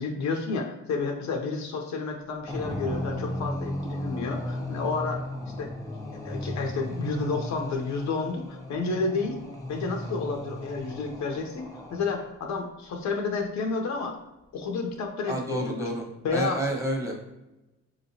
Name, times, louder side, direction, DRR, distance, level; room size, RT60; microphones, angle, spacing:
voice 1, 0.0-5.3 5.6-5.7 6.2-9.3 9.7-11.7 11.9-14.2 14.5-15.9 16.2-16.6, left 4 dB, 65° left, 3 dB, 0.7 m, -30 dB
sound 1, 2.5-12.4, left 1 dB, 10° left, 0.9 m, -35 dB
voice 2, 15.3-16.0 16.3-17.1, right 1 dB, 10° right, -1 dB, 1.2 m, -29 dB
6.0 x 2.9 x 2.7 m, 1.0 s
cardioid pair, 90°, 30 cm